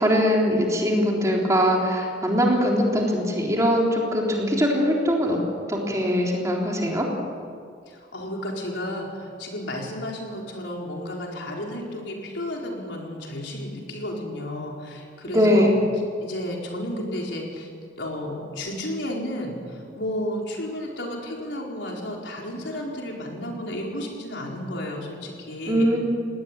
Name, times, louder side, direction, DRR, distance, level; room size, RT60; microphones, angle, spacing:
voice 1, 0.0-5.4 5.7-7.1 15.3-15.8 25.7-26.0, equal, 15° right, -1 dB, 3.7 m, -21 dB
voice 2, 0.9-1.4 7.9-15.7 16.2-17.7 17.9-26.0, left 1 dB, 75° left, -1 dB, 4.6 m, -32 dB
20.5 x 18.0 x 8.9 m, 2.2 s
head